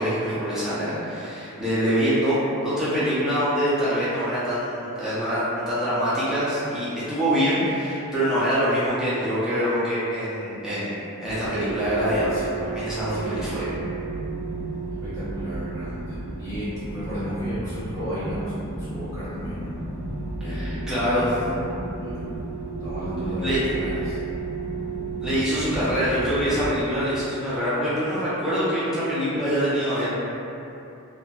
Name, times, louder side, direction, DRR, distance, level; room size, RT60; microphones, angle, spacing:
voice 1, 0.0-2.4 2.6-13.7 20.4-21.3 23.4-23.6 25.2-30.1, equal, 5° right, -13 dB, 0.6 m, -25 dB
sound 1, 11.2-26.7, right 3 dB, 20° right, 1.0 m, -33 dB
voice 2, 12.0-12.6 13.1-13.6 14.9-19.8 20.4-22.3 22.8-24.2, equal, 45° left, -16 dB, 1.5 m, -34 dB
2.7 x 2.6 x 2.3 m, 2.8 s
head